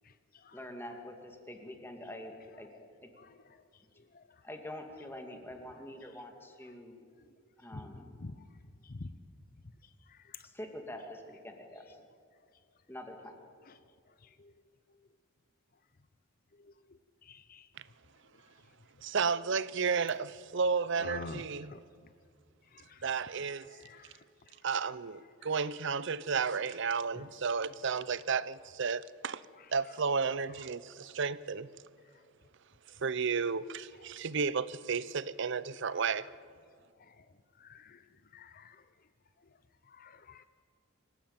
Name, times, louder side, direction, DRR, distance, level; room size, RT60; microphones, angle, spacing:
voice 1, 0.5-2.7 3.0-3.1 4.4-7.0 7.6-8.1 10.4-11.8 12.9-13.4, left 1 dB, 10° left, 2.3 m, -45 dB
voice 2, 17.3-17.6 21.0-21.4 21.7-21.8 38.3-38.6 40.0-40.4, left 3 dB, 40° left, 0.7 m, -43 dB
voice 3, 19.0-21.7 23.0-23.7 24.6-29.4 29.7-31.7 33.0-36.3, right 5 dB, 60° right, 0.6 m, -32 dB
26.5 x 15.0 x 8.9 m
head